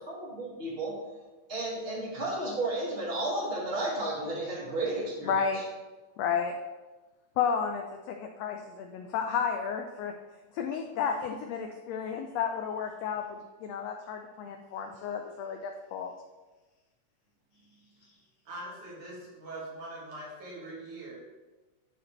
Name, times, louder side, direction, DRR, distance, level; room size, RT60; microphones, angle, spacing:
voice 1, 0.1-0.9 1.5-5.6, right 2 dB, 25° right, -5 dB, 1.4 m, -33 dB
voice 2, 5.2-5.6 6.2-6.5 7.4-10.1 10.5-16.1, left 6 dB, 85° left, 4 dB, 1.4 m, -32 dB
voice 3, 18.5-21.2, right 2 dB, 75° right, -5 dB, 3.3 m, -42 dB
12.0 x 4.1 x 3.2 m, 1.2 s
omnidirectional pair, 3.5 m